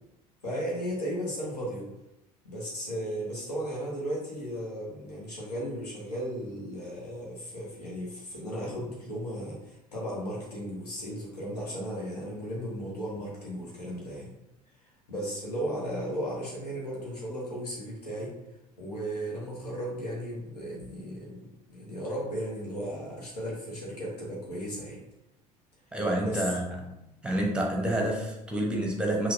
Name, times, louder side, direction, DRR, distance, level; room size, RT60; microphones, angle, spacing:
voice 1, 0.4-1.9 2.4-14.3 14.8-18.3 18.8-25.0 26.2-26.6, equal, 75° left, -4 dB, 1.4 m, -35 dB
voice 2, 25.9-27.0 27.2-29.3, right 1 dB, 5° right, 0 dB, 1.0 m, -28 dB
5.7 x 2.9 x 2.6 m, 0.88 s
figure-of-eight pair, 65°, 20 cm